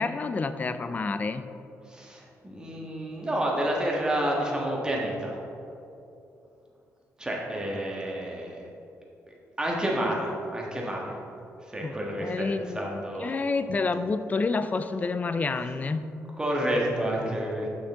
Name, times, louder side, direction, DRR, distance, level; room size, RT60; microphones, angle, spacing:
voice 1, 0.0-1.4 11.8-12.9 13.2-16.2, left 4 dB, 30° left, 11 dB, 0.3 m, -29 dB
voice 2, 1.8-5.4 7.2-8.6 9.6-11.2 11.6-13.4 16.4-17.7, right 1 dB, 15° right, -2 dB, 1.5 m, -29 dB
6.4 x 6.3 x 3.6 m, 2.7 s
cardioid pair, 95°, 5 cm